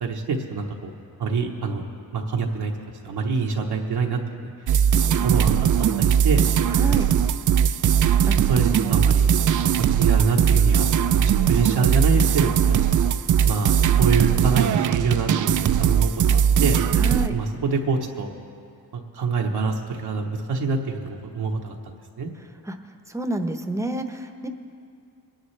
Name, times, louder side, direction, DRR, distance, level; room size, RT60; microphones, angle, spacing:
voice 1, 0.0-0.9 1.2-1.8 2.1-2.7 3.0-4.5 5.2-5.7 6.0-6.4 8.4-9.3 9.9-11.2 11.5-12.8 13.5-16.8 17.3-18.3 18.9-21.8 22.2-22.3, right 4 dB, 80° right, 0 dB, 1.1 m, -25 dB
sound 1, 4.7-17.3, right 8 dB, 50° right, 0.5 m, -19 dB
voice 2, 6.7-7.1 8.3-8.4 17.0-17.3 22.7-22.8 23.1-24.5, right 1 dB, 10° right, 6 dB, 0.8 m, -28 dB
21.5 x 10.0 x 3.3 m, 2.4 s
cardioid pair, 75°, 39 cm